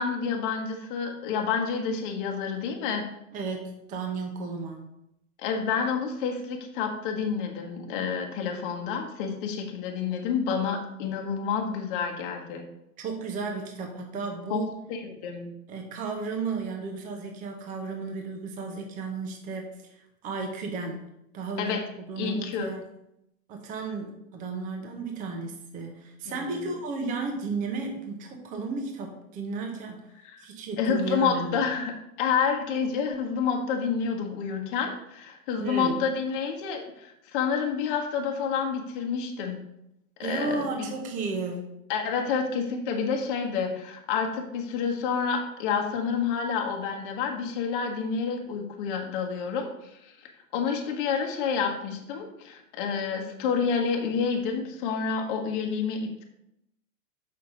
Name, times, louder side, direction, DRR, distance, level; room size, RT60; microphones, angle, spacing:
voice 1, 0.0-3.0 5.4-12.6 14.5-14.6 14.9-15.5 21.6-21.8 22.2-22.7 26.3-26.6 30.2-30.4 30.8-39.6 40.2-40.9 41.9-50.1 50.5-56.2, left 6 dB, 35° left, 2 dB, 1.1 m, -29 dB
voice 2, 3.3-4.9 13.0-14.8 15.7-21.0 21.3-21.8 22.1-22.8 23.5-30.1 30.4-31.6 35.6-36.0 40.2-41.7, right 4 dB, 20° right, 2 dB, 0.9 m, -33 dB
6.5 x 5.7 x 3.8 m, 0.82 s
hypercardioid pair, 145°, 43 cm